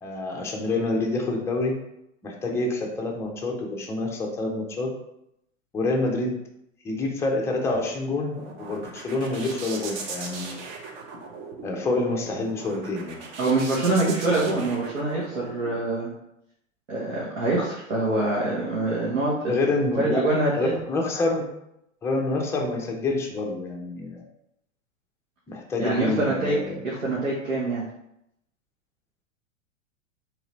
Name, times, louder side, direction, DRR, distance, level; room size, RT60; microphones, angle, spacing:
voice 1, 0.0-1.8 2.2-4.9 5.7-6.4 6.8-10.6 11.6-13.2 14.3-14.5 19.5-20.3 20.5-21.5 22.0-24.2 25.5-26.8, left 2 dB, 5° left, 0 dB, 0.4 m, -27 dB
sound 1, 7.9-15.8, right 4 dB, 40° right, 0.7 m, -39 dB
voice 2, 13.4-16.1 16.9-19.6 20.0-20.7 25.8-26.6 26.8-27.8, right 2 dB, 80° right, -5 dB, 1.1 m, -25 dB
3.7 x 3.3 x 3.0 m, 0.80 s
figure-of-eight pair, 95°, 39 cm